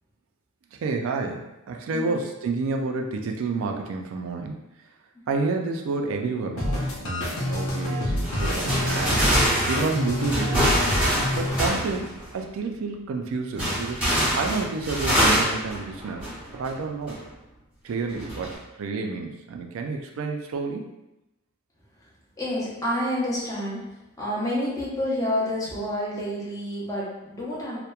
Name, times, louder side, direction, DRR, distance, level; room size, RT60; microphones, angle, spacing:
voice 1, 0.8-4.6 5.3-6.8 7.0-9.3 9.7-10.8 11.4-14.1 14.3-16.3 16.5-17.2 17.8-20.8, right 4 dB, 70° right, 3 dB, 0.3 m, -29 dB
sound 1, 6.6-11.7, left 1 dB, 80° left, 0.5 m, -27 dB
sound 2, 8.2-12.3 13.6-16.7 17.1-17.2 18.2-18.5, equal, 5° right, 1.0 m, -25 dB
voice 2, 22.4-23.8 24.2-27.8, left 1 dB, 15° left, -6 dB, 0.6 m, -28 dB
2.8 x 2.1 x 2.2 m, 0.92 s
head